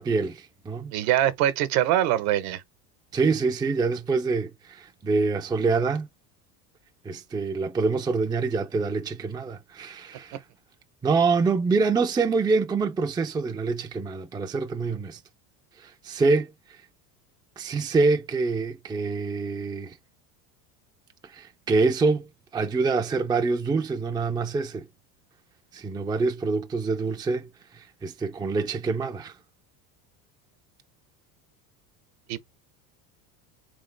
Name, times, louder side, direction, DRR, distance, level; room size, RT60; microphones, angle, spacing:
voice 1, 0.0-0.9 3.1-6.1 7.0-10.4 11.0-15.2 15.8-16.5 17.6-19.9 21.3-22.3 22.5-24.9 25.7-27.5 27.7-29.3, right 4 dB, 10° right, 0.5 m, -25 dB
voice 2, 0.9-2.6 32.3-32.4, right 12 dB, 65° right, 1.1 m, -23 dB
3.7 x 3.6 x 3.3 m
supercardioid pair, 105°, 45 cm